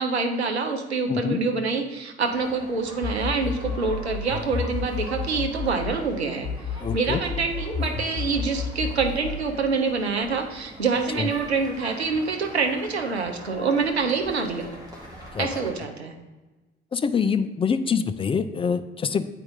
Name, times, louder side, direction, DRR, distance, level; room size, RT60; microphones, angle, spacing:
voice 1, 0.0-6.5 6.9-14.7 15.4-16.1, right 4 dB, 85° right, 4 dB, 0.6 m, -26 dB
voice 2, 1.1-1.4 6.8-7.2 11.2-11.3 15.3-15.6 16.9-19.3, left 6 dB, 15° left, 10 dB, 0.4 m, -25 dB
sound 1, 2.2-15.7, equal, 10° right, 2.0 m, -43 dB
sound 2, 3.0-6.0 6.4-9.5, left 5 dB, 60° left, 0.9 m, -31 dB
8.3 x 4.5 x 3.7 m, 1.2 s
figure-of-eight pair, 50°, 31 cm